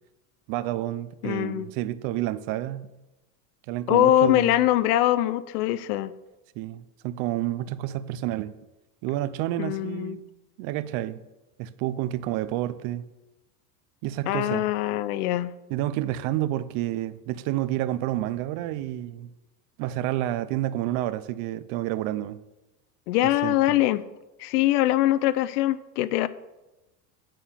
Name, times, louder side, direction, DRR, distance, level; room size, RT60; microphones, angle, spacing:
voice 1, 0.5-2.9 3.7-4.6 6.6-8.5 9.0-10.2 10.6-11.2 11.6-13.1 14.0-14.7 15.7-19.3 19.8-22.4 23.2-23.8, right 14 dB, 50° right, 0.6 m, -29 dB
voice 2, 1.2-1.7 3.9-6.1 9.6-10.2 14.3-15.5 23.1-24.0 24.4-26.3, left 14 dB, 75° left, 0.6 m, -23 dB
9.1 x 4.5 x 7.0 m
supercardioid pair, 135°, 46 cm